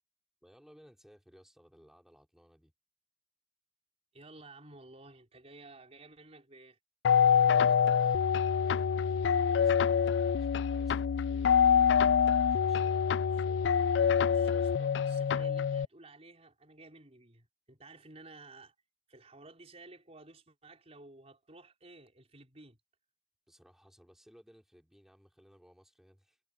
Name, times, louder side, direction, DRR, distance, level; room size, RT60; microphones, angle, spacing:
voice 1, 0.4-2.7 7.3-8.2 8.6-12.1 12.4-13.3 23.5-26.4, equal, ahead, 5.1 m, -60 dB
voice 2, 4.1-6.8 13.2-13.8 14.2-18.7 19.1-22.8, right 2 dB, 35° right, 4.8 m, -54 dB
sound 1, 7.0-15.8, left 7 dB, 70° left, 0.4 m, -26 dB
head